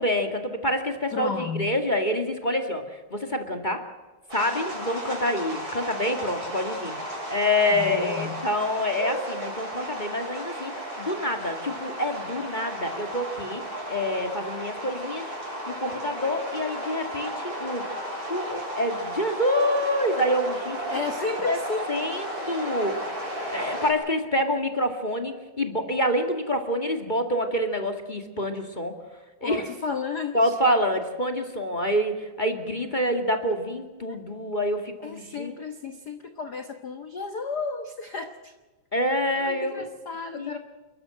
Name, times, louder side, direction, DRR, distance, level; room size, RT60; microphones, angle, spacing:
voice 1, 0.0-2.8 3.1-3.8 4.3-7.0 7.3-10.7 11.0-13.6 13.9-15.3 15.7-17.8 18.3-20.8 21.5-21.6 21.9-23.0 23.5-28.9 29.4-29.6 30.3-35.5 38.9-39.9 40.4-40.5, left 1 dB, 20° left, 5 dB, 1.8 m, -27 dB
voice 2, 1.1-1.7 7.7-8.4 20.9-22.1 23.7-23.8 29.4-30.6 34.1-34.2 35.0-38.5 39.3-40.6, left 4 dB, 50° left, 7 dB, 1.2 m, -33 dB
sound 1, 4.3-23.9, right 1 dB, 30° right, 7.2 m, -34 dB
29.0 x 14.0 x 7.8 m, 1.3 s
omnidirectional pair, 3.4 m